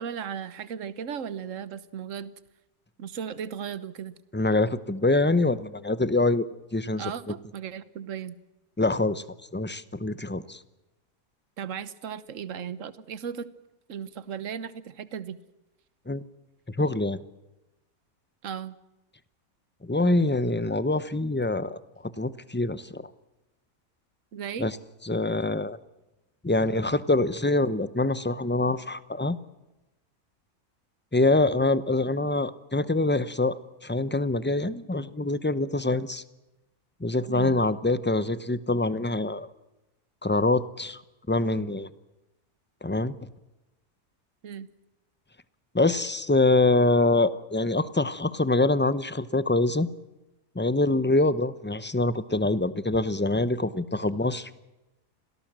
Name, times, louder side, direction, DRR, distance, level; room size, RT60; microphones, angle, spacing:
voice 1, 0.0-2.3 3.0-4.1 7.0-8.3 11.6-13.5 13.9-15.4 18.4-18.8 24.3-24.7 37.3-37.6 44.4-44.7, right 8 dB, 60° right, 15 dB, 1.4 m, -36 dB
voice 2, 4.3-6.5 6.7-7.1 8.8-9.2 9.5-10.6 16.1-16.2 16.7-17.2 19.9-21.8 22.2-23.1 24.6-24.8 25.0-25.8 26.4-29.4 31.1-36.2 37.0-39.5 40.2-41.0 41.3-41.9 42.8-43.1 45.7-49.9 50.5-54.5, left 2 dB, 10° left, 15 dB, 0.5 m, -25 dB
27.0 x 18.0 x 7.5 m, 0.99 s
omnidirectional pair, 1.6 m